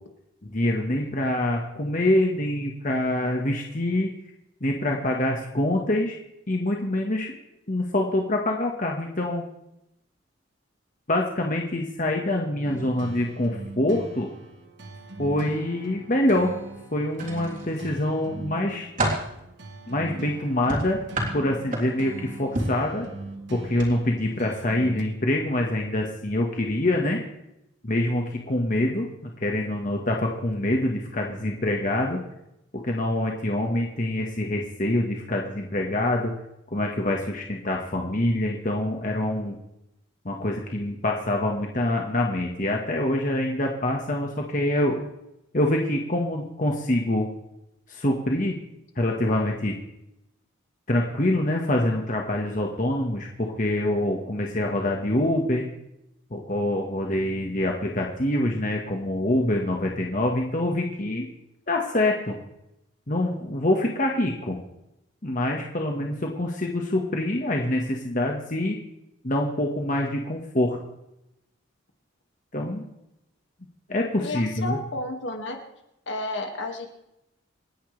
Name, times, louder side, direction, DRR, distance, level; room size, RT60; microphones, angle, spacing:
voice 1, 0.4-4.1 4.6-6.2 6.5-7.3 7.7-9.4 11.1-14.3 15.2-16.5 16.9-18.9 19.9-21.0 21.3-23.1 23.5-27.2 27.8-32.2 32.7-36.3 36.7-39.5 40.2-45.0 45.5-47.3 47.9-48.6 48.9-49.8 50.9-55.6 56.3-61.2 61.7-62.3 63.1-64.6 65.2-68.8 69.2-70.8 72.5-72.8 73.9-74.8, left 1 dB, 40° left, 0 dB, 1.5 m, -25 dB
sound 1, 12.6-25.0, right 2 dB, 55° right, 1.5 m, -40 dB
sound 2, 17.1-17.9 18.4-19.3 20.7-22.1 22.5-22.8 23.7-23.9 24.3-24.4, right 1 dB, 40° right, 3.6 m, -29 dB
voice 2, 74.2-75.6 76.1-76.9, left 2 dB, 65° left, 3 dB, 2.1 m, -31 dB
28.5 x 10.5 x 3.4 m, 0.85 s
head